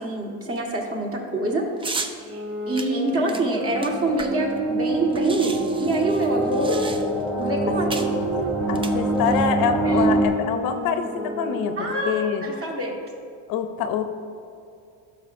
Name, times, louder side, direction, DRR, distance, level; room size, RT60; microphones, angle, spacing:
voice 1, 0.0-1.7 2.3-6.8 7.4-8.0 9.8-10.1 11.8-13.0, right 2 dB, 35° right, -1 dB, 1.7 m, -26 dB
sound 1, 1.8-2.2 2.8-4.6 4.8-4.9 5.1-7.3 7.9-8.2 8.7-9.5, right 3 dB, 15° right, 0.4 m, -34 dB
sound 2, 2.2-6.9 7.4-12.4, right 1 dB, 85° right, 1.4 m, -32 dB
sound 3, 3.3-10.3, right 2 dB, ahead, 0.8 m, -25 dB
voice 2, 8.7-12.4 13.5-14.0, left 7 dB, 60° left, 8 dB, 0.7 m, -25 dB
14.0 x 6.2 x 2.6 m, 2.4 s
cardioid pair, 120°, 39 cm